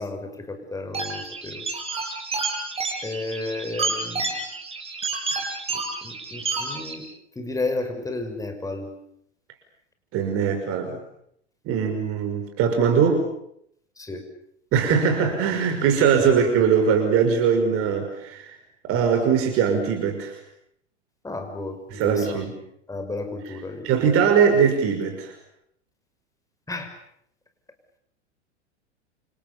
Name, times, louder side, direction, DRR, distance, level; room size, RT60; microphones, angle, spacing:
voice 1, 0.0-1.6 3.0-4.2 5.7-7.0 7.4-8.9 14.0-14.2 16.2-16.3 21.2-22.4 22.9-23.9 26.7-26.9, left 2 dB, 10° left, 6 dB, 6.3 m, -32 dB
sound 1, 0.9-7.0, right 3 dB, 15° right, 7.4 m, -30 dB
voice 2, 10.1-11.0 11.7-13.3 14.7-18.6 18.9-20.4 21.9-22.5 23.4-25.3, right 6 dB, 40° right, 5 dB, 5.9 m, -21 dB
29.0 x 28.5 x 7.1 m, 0.72 s
figure-of-eight pair, 90°, 35 cm